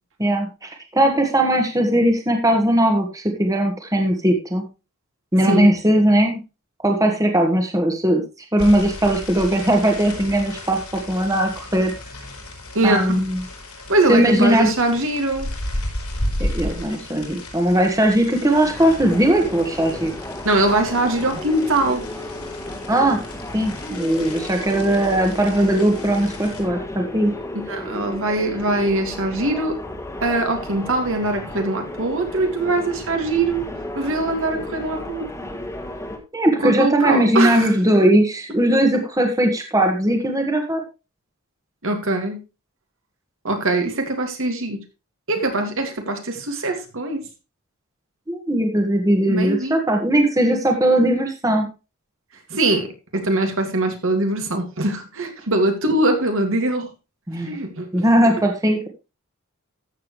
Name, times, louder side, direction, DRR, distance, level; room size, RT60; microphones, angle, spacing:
voice 1, 0.2-4.6 5.3-6.4 6.8-8.2 8.5-11.9 12.8-13.4 14.1-14.7 16.4-20.1 22.9-23.2 23.5-27.3 36.3-40.8 48.3-51.7 57.3-57.6 57.9-58.9, right 1 dB, 15° right, 3 dB, 1.6 m, -19 dB
voice 2, 5.4-5.7 12.7-13.2 13.9-15.5 20.4-22.0 27.7-29.8 30.2-33.7 34.0-35.3 36.6-37.7 41.8-42.4 43.4-44.8 45.3-47.2 49.3-49.8 52.5-56.9 57.5-58.0, right 2 dB, 60° right, 4 dB, 2.3 m, -22 dB
sound 1, 8.6-26.6, left 1 dB, 85° left, 5.9 m, -34 dB
sound 2, 18.6-36.2, left 1 dB, 15° left, 1.7 m, -34 dB
14.0 x 7.4 x 3.2 m, 0.28 s
head